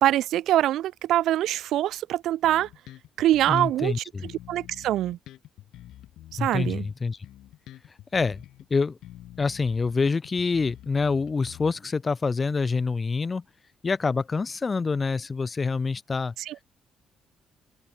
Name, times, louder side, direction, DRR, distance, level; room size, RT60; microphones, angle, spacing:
voice 1, 0.0-2.7 3.2-3.9 4.5-5.2 6.4-6.9 16.4-16.6, right 13 dB, 80° right, 0.3 m, -24 dB
Bass guitar, 2.4-3.9 4.2-8.7 9.0-12.0, left 14 dB, 85° left, 0.9 m, -47 dB
voice 2, 3.5-4.3 6.4-7.2 8.1-8.4 8.7-9.0 9.4-13.4 13.8-16.3, left 4 dB, 30° left, 0.4 m, -26 dB
open air
cardioid pair, 90°, 0 cm